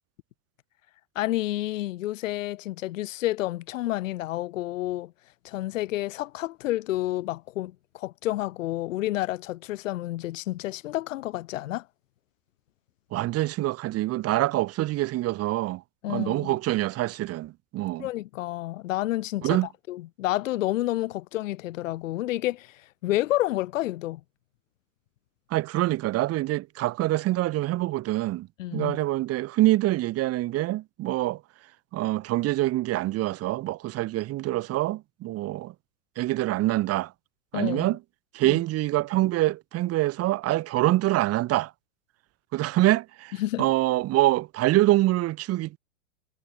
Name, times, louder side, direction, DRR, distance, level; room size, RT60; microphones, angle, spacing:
voice 1, 1.1-5.1 5.4-11.8 16.0-16.5 18.0-19.6 19.9-24.2 28.6-29.0 37.5-37.9 38.4-38.6 43.4-43.7, left 16 dB, 70° left, 1.5 m, -30 dB
voice 2, 13.1-15.8 16.1-18.1 19.4-19.7 25.5-31.4 31.9-35.7 36.2-37.1 37.5-38.0 38.3-41.7 42.5-45.8, right 16 dB, 35° right, 2.4 m, -25 dB
hypercardioid pair, 120°, 40 cm